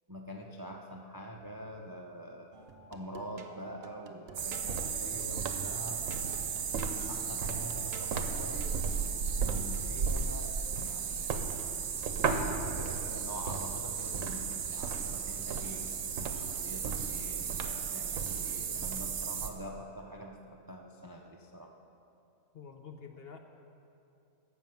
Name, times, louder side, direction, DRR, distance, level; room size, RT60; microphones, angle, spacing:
voice 1, 0.1-2.5 2.9-6.6 7.1-8.7 9.4-11.3 12.4-21.7, equal, 25° right, 1 dB, 0.4 m, -45 dB
sound 1, 2.5-13.2 15.0-16.2 16.5-17.6 18.1-18.5, right 4 dB, 55° right, 0.9 m, -53 dB
sound 2, 4.3-19.5, right 6 dB, 75° right, 1.1 m, -34 dB
voice 2, 22.5-23.4, left 6 dB, 55° left, 5 dB, 0.8 m, -48 dB
15.0 x 6.4 x 5.7 m, 2.8 s
omnidirectional pair, 1.4 m